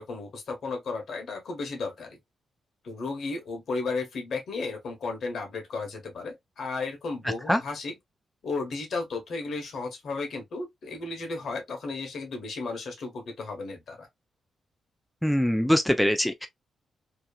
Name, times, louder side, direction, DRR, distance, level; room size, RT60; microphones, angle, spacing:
voice 1, 0.0-2.2 2.8-7.9 8.4-14.1, left 3 dB, 65° left, 1.2 m, -34 dB
voice 2, 15.2-16.5, equal, 5° left, 0.3 m, -23 dB
2.9 x 2.3 x 2.2 m
cardioid pair, 115°, 0 cm